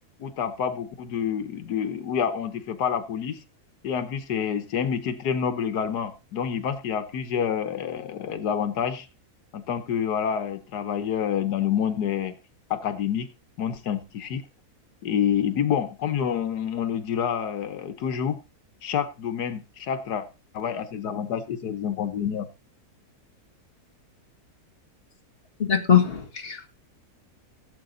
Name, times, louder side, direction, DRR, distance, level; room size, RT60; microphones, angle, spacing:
voice 1, 0.2-3.4 3.8-9.1 9.5-12.3 12.7-13.3 13.6-14.4 15.0-18.4 18.8-20.3 20.5-22.5, left 8 dB, 90° left, 9 dB, 1.7 m, -28 dB
voice 2, 25.6-26.8, left 8 dB, 35° left, 3 dB, 2.2 m, -22 dB
17.0 x 7.9 x 3.9 m, 0.30 s
omnidirectional pair, 1.7 m